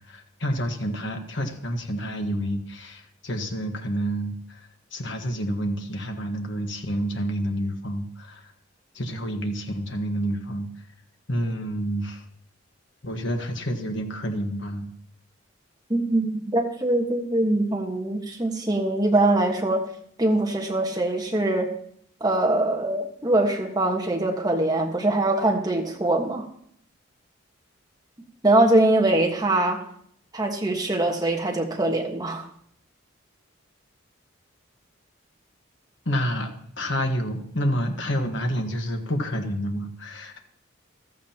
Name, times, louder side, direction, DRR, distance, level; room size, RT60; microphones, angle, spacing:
voice 1, 0.1-8.5 8.9-10.7 11.3-12.2 13.0-14.9 36.0-36.5 36.8-40.4, equal, 60° left, 5 dB, 1.4 m, -29 dB
voice 2, 15.9-19.8 20.2-21.7 22.2-26.5 28.4-29.8 30.3-32.4, right 2 dB, 20° right, 1 dB, 1.4 m, -23 dB
14.5 x 13.0 x 2.9 m, 0.67 s
head